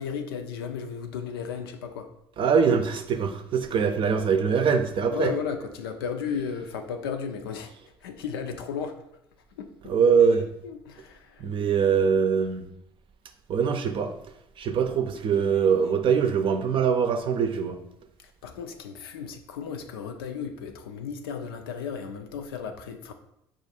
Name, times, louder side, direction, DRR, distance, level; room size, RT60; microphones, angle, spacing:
voice 1, 0.0-2.1 5.1-7.7 8.0-9.0 9.6-9.9 10.6-11.5 15.5-15.7 18.2-23.1, left 6 dB, 80° left, 6 dB, 0.5 m, -34 dB
voice 2, 2.4-5.3 9.9-10.4 11.4-12.7 13.5-14.1 14.6-17.8, right 6 dB, 45° right, 7 dB, 0.6 m, -23 dB
4.8 x 2.5 x 4.1 m, 0.79 s
hypercardioid pair, 60°, 12 cm